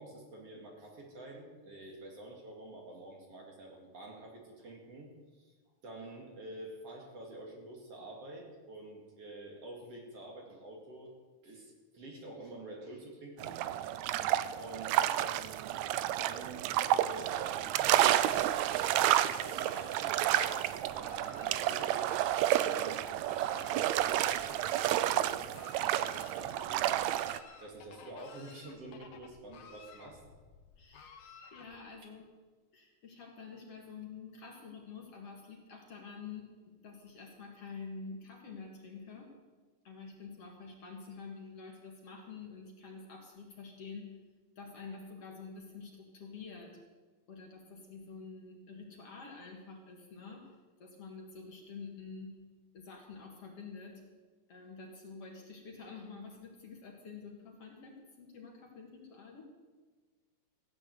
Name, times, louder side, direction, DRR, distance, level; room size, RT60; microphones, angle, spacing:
voice 1, 0.0-5.5 5.8-11.1 11.4-13.6 14.6-23.1 23.4-27.1 27.6-30.2, right 1 dB, 50° right, 0 dB, 3.0 m, -48 dB
sound 1, 13.4-27.4, right 13 dB, 80° right, 1.6 m, -30 dB
Fowl, 17.2-32.0, left 6 dB, 85° left, 2.9 m, -55 dB
voice 2, 30.8-31.1 31.5-32.2 32.7-36.5 36.8-39.3 39.8-44.1 44.6-46.8 47.3-50.5 50.8-52.4 52.7-54.0 54.5-59.5, left 4 dB, 50° left, 0 dB, 2.6 m, -48 dB
15.5 x 8.5 x 7.9 m, 1.3 s
omnidirectional pair, 3.7 m